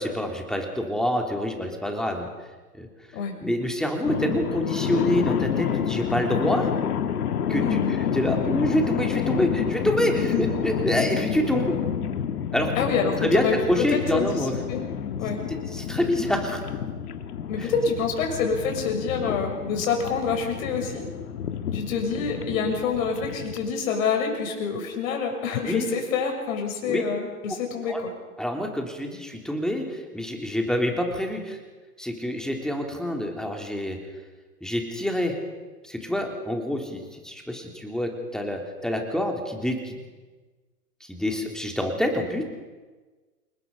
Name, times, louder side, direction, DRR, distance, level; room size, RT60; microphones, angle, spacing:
voice 1, 0.0-2.3 2.8-2.9 3.4-6.7 7.5-7.8 8.1-11.8 12.5-12.9 13.2-14.5 15.5-16.6 17.6-17.7 25.6-25.9 26.9-27.0 27.8-28.0 28.4-31.6 32.0-34.0 34.6-35.4 35.8-40.0 41.0-42.4, equal, ahead, 2 dB, 3.4 m, -27 dB
sound 1, 4.0-23.7, left 8 dB, 70° left, 2.0 m, -29 dB
voice 2, 7.5-8.0 10.3-10.6 12.8-14.8 15.2-15.4 17.5-21.0 21.7-28.1, left 5 dB, 55° left, 3 dB, 6.9 m, -27 dB
29.0 x 20.0 x 5.6 m, 1.3 s
hypercardioid pair, 115°, 47 cm